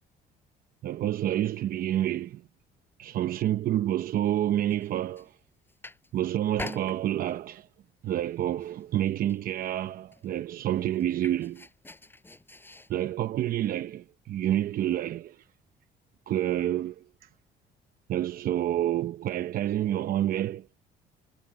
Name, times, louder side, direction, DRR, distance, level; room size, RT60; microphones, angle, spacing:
voice 1, 0.8-2.4 3.0-5.3 6.1-7.7 8.0-11.7 12.9-15.4 16.3-17.3 18.1-20.7, right 12 dB, 60° right, 0.8 m, -28 dB
sound 1, 4.7-5.3 5.7-6.2 6.6-7.6 8.1-8.3 8.6-9.5 9.8-9.9 10.1-12.9, left 2 dB, 10° left, 6.7 m, -44 dB
cardioid pair, 110°, 17 cm